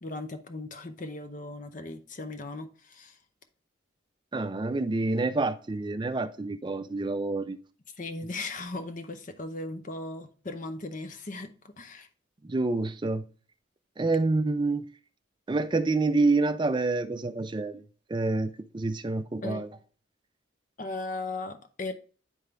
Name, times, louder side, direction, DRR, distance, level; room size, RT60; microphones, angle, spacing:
voice 1, 0.0-3.2 8.0-12.1 19.4-19.7 20.8-21.9, left 2 dB, 40° left, 0.7 m, -37 dB
voice 2, 4.3-7.6 12.4-13.3 14.0-14.9 15.5-17.8 18.1-19.7, right 3 dB, 25° right, 0.4 m, -27 dB
9.7 x 3.7 x 3.3 m
head